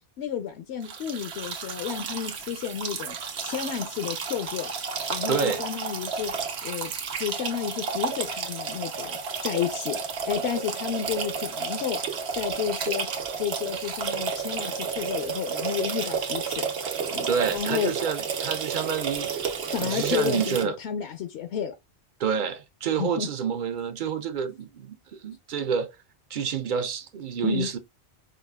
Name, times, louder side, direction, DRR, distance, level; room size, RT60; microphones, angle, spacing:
voice 1, 0.2-3.2 3.4-4.7 5.1-6.3 6.6-6.9 7.2-12.0 12.3-13.1 13.4-16.7 17.1-17.9 19.7-21.7 23.0-23.3 27.4-27.7, left 9 dB, 80° left, 0.9 m, -31 dB
sound 1, 0.8-20.6, right 6 dB, 75° right, 1.0 m, -31 dB
voice 2, 5.3-5.6 17.3-19.3 19.8-20.8 22.2-25.9 26.3-27.8, right 7 dB, 60° right, 0.6 m, -28 dB
4.9 x 2.3 x 2.2 m
omnidirectional pair, 1.1 m